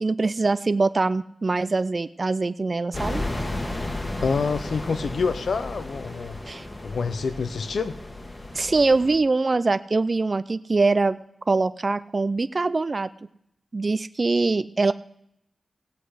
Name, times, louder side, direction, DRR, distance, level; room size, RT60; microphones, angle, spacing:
voice 1, 0.0-3.2 6.5-6.7 8.5-11.2 11.5-13.1 13.7-14.9, right 3 dB, 40° right, 13 dB, 0.4 m, -23 dB
sound 1, 2.9-9.2, left 1 dB, 30° left, 1.4 m, -33 dB
voice 2, 4.2-6.4 6.8-7.9, left 5 dB, 85° left, 10 dB, 0.7 m, -27 dB
17.0 x 8.0 x 4.9 m, 0.78 s
wide cardioid pair, 80°, 0 cm